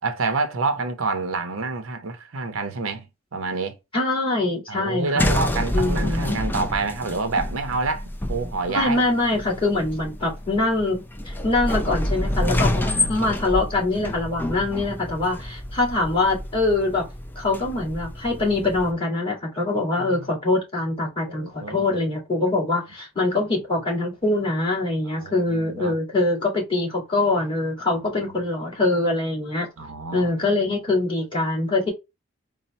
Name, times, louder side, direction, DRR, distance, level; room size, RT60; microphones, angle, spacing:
voice 1, 0.0-3.1 3.3-3.7 4.7-9.0 12.9-13.3 20.0-20.3 21.3-22.0 25.1-25.9 29.8-30.3, right 3 dB, 75° right, 0.7 m, -28 dB
voice 2, 3.9-5.4 5.7-6.3 8.7-17.1 17.4-29.7 30.1-31.9, left 2 dB, 25° left, 1.9 m, -24 dB
sound 1, 5.2-18.9, left 1 dB, 10° left, 0.4 m, -28 dB
4.1 x 2.1 x 4.0 m
head